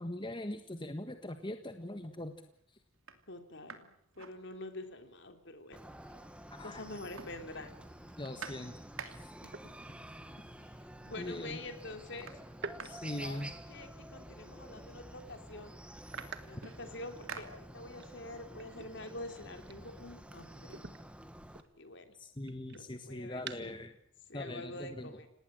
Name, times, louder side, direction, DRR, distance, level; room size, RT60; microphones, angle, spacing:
voice 1, 0.0-2.3 6.5-6.8 8.2-8.7 11.2-11.6 12.8-13.5 22.2-23.9 24.3-25.1, left 1 dB, 25° left, 7 dB, 1.5 m, -41 dB
sound 1, 1.5-2.0 2.5-2.6 2.9-5.0 5.4-5.5 5.7-6.5 6.8-9.5 10.5-10.6 11.0-11.5 11.7-14.1 14.9-15.0 15.3-18.2 18.6-20.3, right 5 dB, 75° right, 2.7 m, -51 dB
voice 2, 3.3-5.8 6.6-7.9 9.4-9.7 10.6-12.3 12.8-15.7 16.4-20.8 21.8-22.2 22.7-23.7 24.3-25.3, left 2 dB, 55° left, 7 dB, 3.6 m, -47 dB
Chicken rooster, 5.7-21.6, right 1 dB, 5° right, 1.7 m, -50 dB
sound 2, 9.5-10.3 12.5-14.1 14.5-14.8 15.2-15.3 16.0-17.5 17.9-20.3 20.7-23.9, right 5 dB, 55° right, 1.7 m, -50 dB
27.5 x 19.0 x 7.8 m, 0.69 s
head